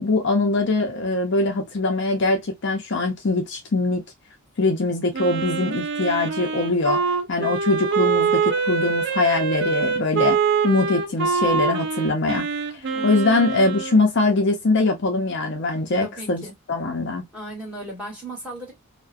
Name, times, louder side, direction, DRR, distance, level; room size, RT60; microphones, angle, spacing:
voice 1, 0.0-4.0 4.6-7.0 7.3-10.4 10.6-12.5 13.0-16.4 16.7-17.2, left 2 dB, 50° left, 0.5 m, -22 dB
Wind instrument woodwind instrument, 5.1-14.0, right 5 dB, 50° right, 0.4 m, -24 dB
voice 2, 16.0-16.5 17.3-18.7, right 1 dB, 5° right, 1.2 m, -36 dB
2.4 x 2.1 x 2.4 m
head